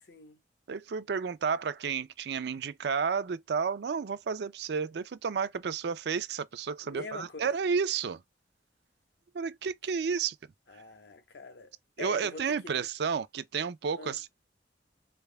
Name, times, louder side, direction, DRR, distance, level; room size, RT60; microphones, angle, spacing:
voice 1, 0.0-0.4 6.8-7.5 10.7-11.7 12.0-12.7 14.0-14.2, left 3 dB, 70° left, 0.8 m, -44 dB
voice 2, 0.7-8.2 9.3-10.4 12.0-14.3, right 6 dB, 65° right, 0.4 m, -31 dB
4.1 x 3.3 x 2.2 m
head